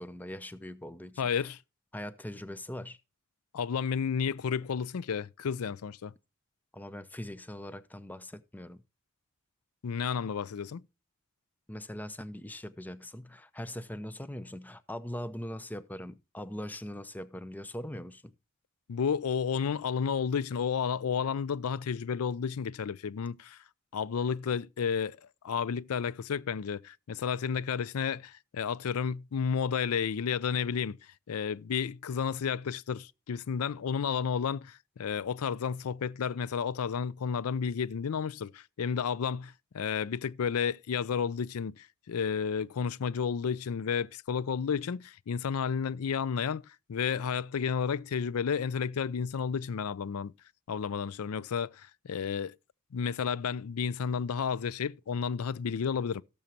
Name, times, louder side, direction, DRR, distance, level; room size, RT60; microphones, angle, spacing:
voice 1, 0.0-1.5 1.9-3.0 6.7-8.8 11.7-18.3, left 1 dB, 10° left, 0.6 m, -41 dB
voice 2, 1.2-1.6 3.5-6.1 9.8-10.8 18.9-23.6 23.9-25.2 25.4-31.0 31.3-50.3 50.7-52.5 52.9-56.2, left 6 dB, 85° left, 0.4 m, -32 dB
17.5 x 7.0 x 2.9 m
head